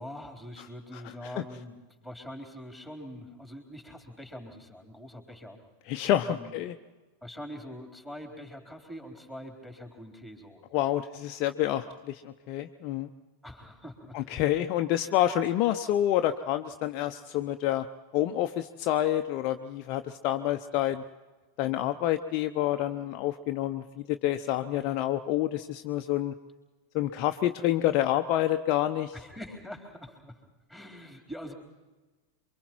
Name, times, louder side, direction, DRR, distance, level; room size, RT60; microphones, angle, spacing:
voice 1, 0.0-5.6 6.2-6.5 7.2-10.9 13.4-14.4 29.1-30.4 30.7-31.5, equal, 5° right, 3 dB, 3.9 m, -44 dB
voice 2, 5.9-6.7 10.7-13.1 14.1-17.9 18.1-21.0 21.6-26.3 26.9-29.1, left 12 dB, 40° left, 7 dB, 0.7 m, -28 dB
28.0 x 24.0 x 4.6 m, 1.2 s
figure-of-eight pair, 90°, 0 cm